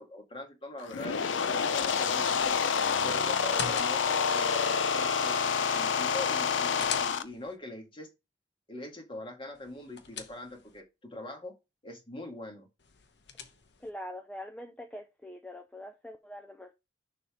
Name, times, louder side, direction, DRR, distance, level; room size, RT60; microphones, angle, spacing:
voice 1, 0.0-2.6 3.0-8.1 8.7-11.5 11.8-12.7, left 1 dB, 30° left, 1.7 m, -43 dB
sound 1, 0.8-7.2, left 6 dB, 85° left, 0.6 m, -28 dB
sound 2, 3.4-4.3 6.3-7.6 9.5-10.8 12.8-13.9, left 6 dB, 65° left, 0.9 m, -42 dB
voice 2, 13.8-16.7, left 1 dB, 5° left, 0.5 m, -43 dB
6.7 x 3.5 x 4.8 m
head